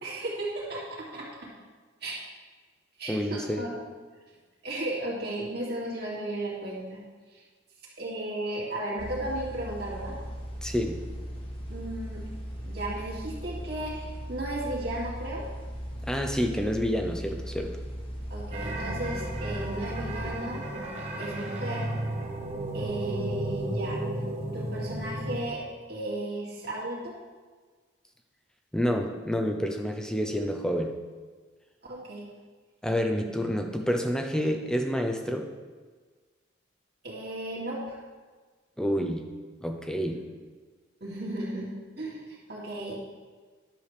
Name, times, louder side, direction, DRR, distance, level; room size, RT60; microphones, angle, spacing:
voice 1, 0.0-1.5 2.0-2.2 3.0-3.8 4.6-7.0 7.3-7.4 8.0-10.1 11.7-12.2 12.6-15.4 18.3-20.6 21.2-21.9 22.7-24.0 24.5-25.6 25.9-27.1 31.8-32.3 33.2-33.4 37.0-38.0 40.1-40.2 41.0-41.7 42.0-43.0, right 1 dB, 50° right, -5 dB, 2.3 m, -35 dB
voice 2, 3.1-3.6 10.6-11.0 16.0-17.8 28.7-31.0 32.8-35.5 38.8-39.3 39.6-40.2, equal, 5° left, 4 dB, 0.5 m, -28 dB
sound 1, 9.0-20.3, equal, 25° left, 1.3 m, -38 dB
sound 2, 18.5-25.5, right 1 dB, 30° right, 1.2 m, -33 dB
10.5 x 7.2 x 3.3 m, 1.4 s
head